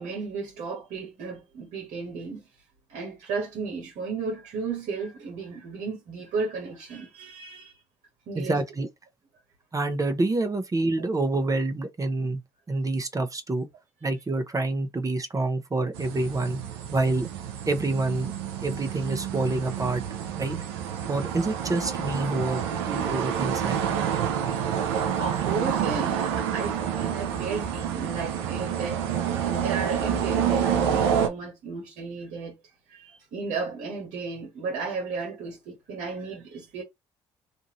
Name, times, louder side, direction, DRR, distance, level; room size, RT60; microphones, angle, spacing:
voice 1, 0.0-2.5 2.9-7.7 8.3-8.6 25.2-32.6 32.9-36.8, right 4 dB, 70° right, 1.3 m, -34 dB
voice 2, 8.3-8.9 9.7-12.4 12.7-13.7 14.0-16.6 16.9-17.3 17.7-18.3 18.6-20.0 20.4-20.6 21.1-22.6 22.9-24.0, right 2 dB, 25° right, 0.8 m, -27 dB
sound 1, 15.9-31.3, right 8 dB, 90° right, 0.5 m, -28 dB
2.6 x 2.5 x 2.9 m
hypercardioid pair, 50°, 13 cm